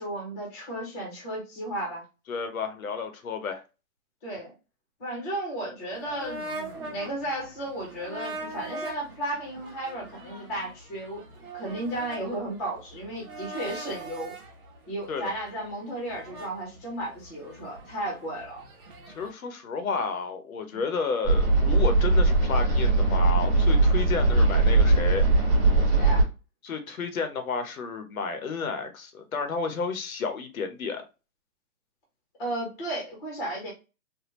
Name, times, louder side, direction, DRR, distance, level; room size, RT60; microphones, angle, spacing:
voice 1, 0.0-2.0 4.2-4.5 5.0-11.2 11.5-14.3 14.9-18.6 20.7-20.8 25.9-26.2 32.4-33.7, right 1 dB, 10° left, 0.7 m, -34 dB
voice 2, 2.3-3.6 15.1-15.4 19.1-25.3 26.6-31.0, left 5 dB, 65° left, 0.8 m, -31 dB
sound 1, 5.9-19.3, right 1 dB, 35° right, 1.1 m, -42 dB
sound 2, 21.2-26.2, right 2 dB, 15° right, 1.0 m, -20 dB
3.4 x 2.1 x 2.9 m
hypercardioid pair, 155°, 45 cm